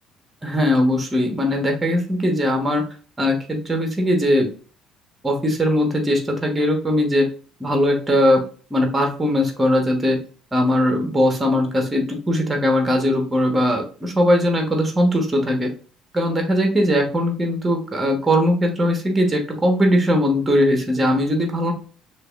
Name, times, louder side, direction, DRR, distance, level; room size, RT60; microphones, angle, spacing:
voice 1, 0.4-2.8 3.2-4.5 5.2-7.3 7.6-8.4 8.7-10.2 10.5-15.7 16.1-21.7, equal, 15° right, 3 dB, 1.1 m, -20 dB
6.4 x 2.6 x 2.4 m, 0.39 s
figure-of-eight pair, 50°, 0 cm